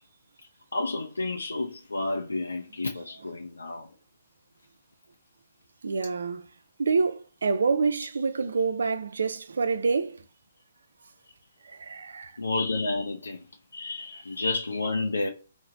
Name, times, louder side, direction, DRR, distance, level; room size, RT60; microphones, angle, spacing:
voice 1, 0.7-3.9 12.4-13.4 13.7-15.3, left 2 dB, 85° left, 0.5 m, -30 dB
voice 2, 5.8-6.5 6.8-10.2 11.6-12.3, right 4 dB, 70° right, 0.4 m, -27 dB
3.1 x 2.1 x 3.7 m
figure-of-eight pair, 135°, 0 cm